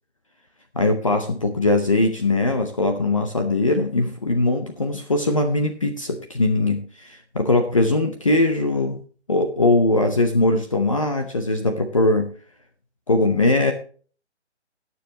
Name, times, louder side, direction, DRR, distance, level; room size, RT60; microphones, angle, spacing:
voice 1, 0.7-9.0 9.3-12.3 13.1-13.7, left 2 dB, 30° left, 5 dB, 0.8 m, -21 dB
20.5 x 7.0 x 2.9 m, 0.41 s
hypercardioid pair, 170°, 35 cm